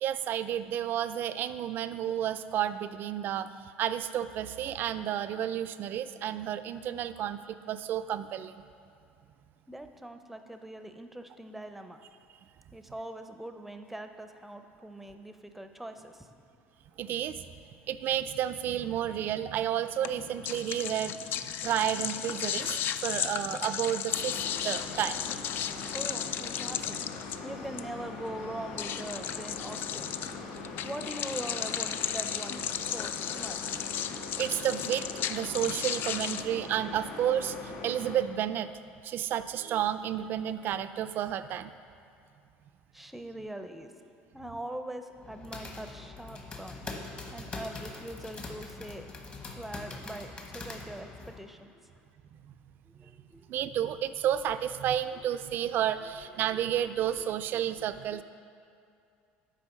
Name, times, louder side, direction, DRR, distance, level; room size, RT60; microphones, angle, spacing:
voice 1, 0.0-3.5 3.8-8.6 17.0-17.4 17.9-24.4 24.6-25.2 34.4-38.7 39.0-41.7 53.5-58.2, right 10 dB, 50° right, 12 dB, 0.4 m, -31 dB
voice 2, 9.7-12.0 12.7-16.3 23.0-23.1 25.8-27.0 27.3-34.0 36.2-36.6 40.6-40.7 42.9-46.8 47.3-49.1 49.4-51.8 52.9-53.6 56.0-56.4 57.8-57.9, right 1 dB, 5° right, 7 dB, 0.5 m, -43 dB
sound 1, 20.0-36.4, left 9 dB, 55° left, 0.3 m, -35 dB
sound 2, 24.1-38.2, left 3 dB, 85° left, 1.2 m, -42 dB
sound 3, 45.2-51.4, left 3 dB, 30° left, 1.1 m, -43 dB
8.9 x 4.7 x 5.9 m, 2.5 s
supercardioid pair, 105°, 4 cm